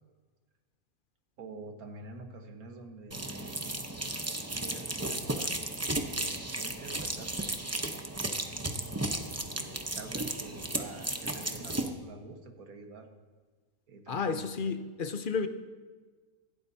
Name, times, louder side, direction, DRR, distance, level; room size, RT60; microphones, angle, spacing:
voice 1, 1.4-3.9 4.6-5.6 5.8-8.0 9.5-13.1 13.9-14.5, right 3 dB, 75° right, 1.8 m, -47 dB
sound 1, 3.1-11.9, right 2 dB, 15° right, 0.6 m, -34 dB
voice 2, 14.1-15.5, left 5 dB, 45° left, 0.8 m, -32 dB
25.0 x 12.0 x 2.8 m
omnidirectional pair, 1.6 m